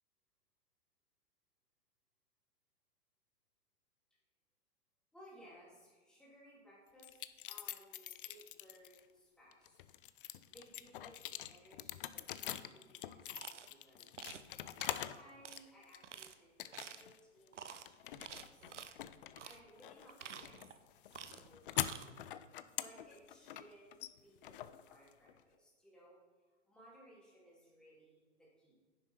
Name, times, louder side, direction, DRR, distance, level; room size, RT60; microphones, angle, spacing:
voice 1, 5.1-10.0 10.5-14.1 14.8-18.7 19.4-20.7 21.0-22.2 22.7-28.8, equal, ahead, -7 dB, 2.8 m, -62 dB
sound 1, 7.0-9.0 9.5-15.2 15.6-16.2 16.6-17.2 17.5-25.4, left 12 dB, 45° left, 0.5 m, -44 dB
sound 2, 13.3-13.7 14.2-14.5 14.8-15.0 15.4-15.6 16.0-16.3 16.7-17.1 17.5-17.8 18.2-18.9 19.4-19.6 20.0-20.8 21.1-21.5 21.7-22.1, right 7 dB, 70° right, 0.7 m, -50 dB
10.0 x 6.8 x 4.4 m, 1.4 s
figure-of-eight pair, 105°, 37 cm